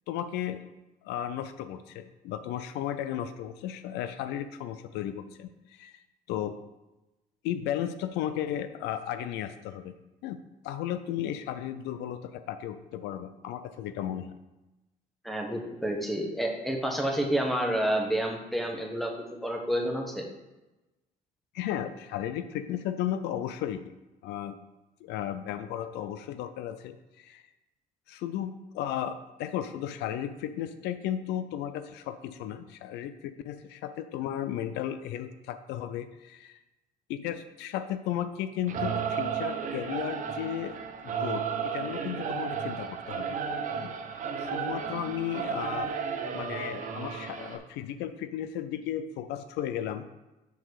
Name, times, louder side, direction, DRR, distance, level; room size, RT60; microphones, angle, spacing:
voice 1, 0.1-0.6 1.0-6.0 6.3-6.5 7.4-9.9 10.2-10.4 10.6-14.3 21.5-23.8 24.2-24.6 25.0-27.4 28.1-36.6 37.1-40.8 41.0-43.4 43.8-43.9 44.4-46.0 46.3-50.1, left 10 dB, 90° left, 11 dB, 0.5 m, -34 dB
voice 2, 15.2-19.1 19.4-20.3, right 1 dB, ahead, 1 dB, 1.4 m, -29 dB
Singing / Musical instrument, 38.7-47.6, right 6 dB, 50° right, 0.9 m, -33 dB
7.0 x 4.0 x 6.3 m, 1.0 s
cardioid pair, 110°, 17 cm